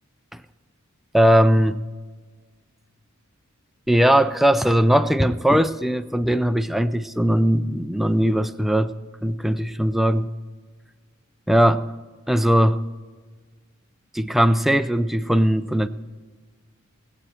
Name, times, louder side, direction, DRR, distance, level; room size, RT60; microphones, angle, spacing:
voice 1, 1.1-1.8 3.9-8.9 9.2-10.2 11.5-11.9 12.3-12.8 14.1-15.9, equal, ahead, 9 dB, 0.4 m, -19 dB
19.5 x 8.7 x 4.3 m, 1.5 s
head